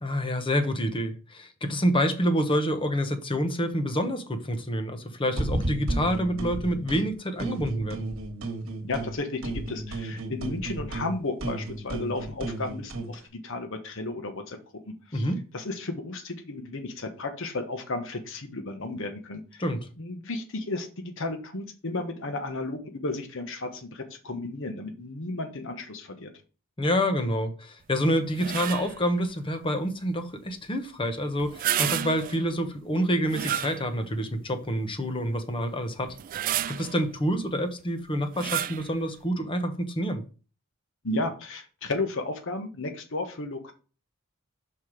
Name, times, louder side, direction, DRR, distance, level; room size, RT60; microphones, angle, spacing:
voice 1, 0.0-8.1 15.1-15.4 19.6-19.9 26.8-36.1 36.7-40.2, equal, 25° left, 0.9 m, -27 dB
sound 1, 5.4-7.0 7.4-9.2 9.4-13.1, right 2 dB, 75° right, 1.4 m, -33 dB
voice 2, 8.8-14.6 14.9-15.3 15.5-19.6 20.0-26.3 41.0-43.7, left 2 dB, 65° left, 1.1 m, -33 dB
sound 2, 28.3-29.0 31.4-32.5 33.3-34.2 34.7-34.8 36.1-37.0 38.3-38.9, right 11 dB, 40° right, 0.3 m, -30 dB
5.7 x 4.7 x 4.9 m
head